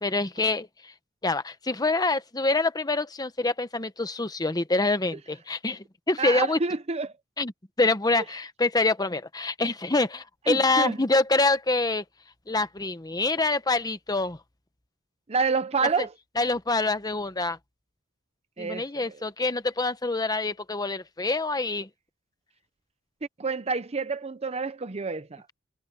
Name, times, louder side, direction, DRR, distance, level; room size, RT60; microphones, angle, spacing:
voice 1, 0.0-0.9 1.2-6.6 7.4-7.5 7.8-12.0 12.5-14.4 16.0-16.1 16.4-17.6 18.6-21.9, left 3 dB, 20° left, 1.0 m, -26 dB
voice 2, 6.2-7.1 8.2-8.3 10.5-11.0 15.3-16.1 18.6-19.1 23.4-25.4, right 4 dB, 30° right, 0.6 m, -28 dB
head